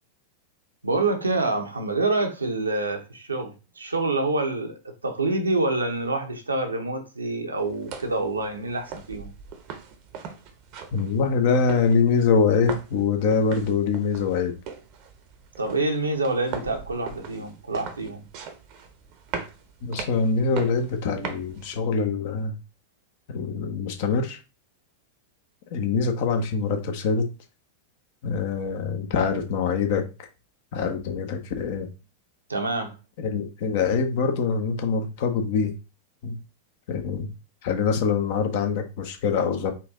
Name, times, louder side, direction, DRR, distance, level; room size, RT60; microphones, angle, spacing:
voice 1, 0.8-9.3 15.6-18.2 32.5-33.0, right 2 dB, 80° right, 0.9 m, -27 dB
sound 1, 7.6-21.8, right 6 dB, 45° right, 0.8 m, -40 dB
voice 2, 10.9-14.5 19.8-22.5 23.3-24.4 25.7-27.2 28.2-30.0 30.7-31.9 33.2-35.7 36.2-36.4 36.9-37.3 37.6-39.7, left 5 dB, 50° left, 0.9 m, -24 dB
4.3 x 2.6 x 3.7 m
figure-of-eight pair, 90°, 0 cm